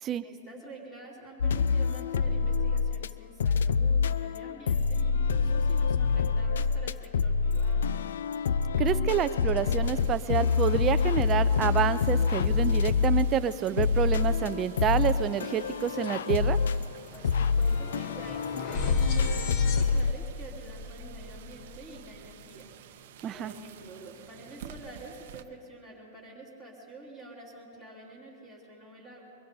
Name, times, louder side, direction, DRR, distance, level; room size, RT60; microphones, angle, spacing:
voice 1, 0.2-7.9 17.1-22.7 23.3-29.3, right 2 dB, 5° left, -4 dB, 3.0 m, -47 dB
sound 1, 1.4-3.1 3.4-20.1, left 5 dB, 90° left, 0.4 m, -26 dB
voice 2, 8.8-16.6 23.2-23.5, right 9 dB, 20° right, 13 dB, 0.4 m, -28 dB
sound 2, 9.8-25.4, right 9 dB, 50° right, 0.7 m, -51 dB
sound 3, 15.6-15.7 16.0-22.3, left 3 dB, 30° left, 0.9 m, -36 dB
23.0 x 22.5 x 2.7 m, 2.7 s
supercardioid pair, 170°, 0 cm